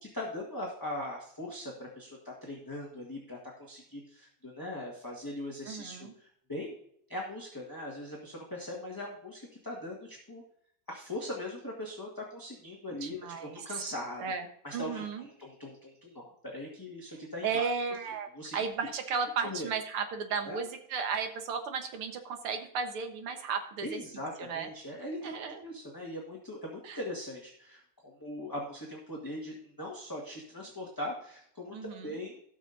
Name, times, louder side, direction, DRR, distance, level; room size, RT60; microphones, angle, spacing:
voice 1, 0.0-6.7 7.1-10.4 10.9-13.2 13.5-14.2 14.6-17.7 18.3-18.5 19.4-19.7 20.4-20.6 23.8-32.4, left 1 dB, 10° left, -2 dB, 1.4 m, -40 dB
voice 2, 5.7-6.1 13.0-13.8 14.2-14.4 14.7-15.3 17.4-18.3 18.5-24.0 24.4-24.7 25.2-25.6 26.8-27.0 31.7-32.2, right 5 dB, 85° right, 6 dB, 2.1 m, -34 dB
18.0 x 6.1 x 2.6 m, 0.70 s
omnidirectional pair, 2.3 m